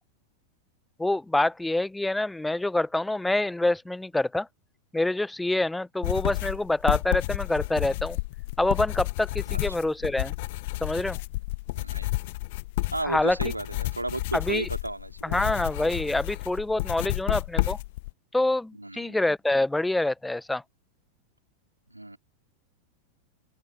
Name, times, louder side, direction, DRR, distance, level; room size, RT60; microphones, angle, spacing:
voice 1, 1.0-4.5 4.9-8.2 8.6-10.3 10.8-11.2 13.0-13.4 14.3-14.7 15.2-17.8 18.3-20.6, left 2 dB, 5° left, 1.1 m, -26 dB
sound 1, 6.0-18.1, left 21 dB, 50° left, 0.8 m, -31 dB
voice 2, 11.7-12.1 12.9-15.6 18.7-19.1 21.9-22.2, right 2 dB, 85° right, 3.1 m, -34 dB
open air
figure-of-eight pair, 90°, 0 cm